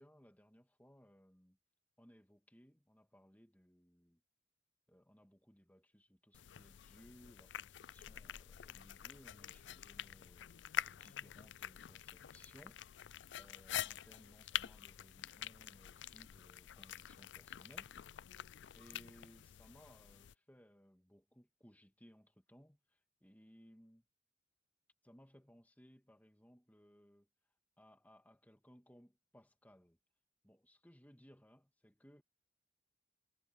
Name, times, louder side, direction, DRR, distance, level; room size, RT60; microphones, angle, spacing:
voice 1, 0.0-1.6 2.0-4.2 4.9-12.8 13.4-17.9 18.7-24.1 25.0-27.3 27.8-30.0 30.4-32.2, equal, 10° left, 2.4 m, -63 dB
sound 1, 6.3-20.3, left 11 dB, 85° left, 0.4 m, -46 dB
head